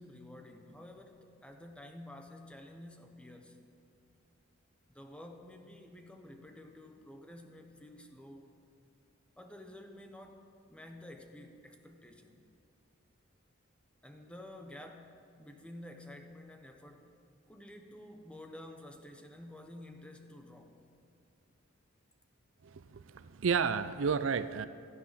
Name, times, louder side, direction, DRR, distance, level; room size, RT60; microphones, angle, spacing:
voice 1, 0.0-3.7 4.9-8.5 9.4-12.5 14.0-17.1 17.5-20.8, left 1 dB, 5° left, 4 dB, 1.0 m, -51 dB
voice 2, 22.6-24.7, right 6 dB, 70° right, 13 dB, 0.5 m, -32 dB
16.0 x 12.5 x 5.8 m, 2.4 s
head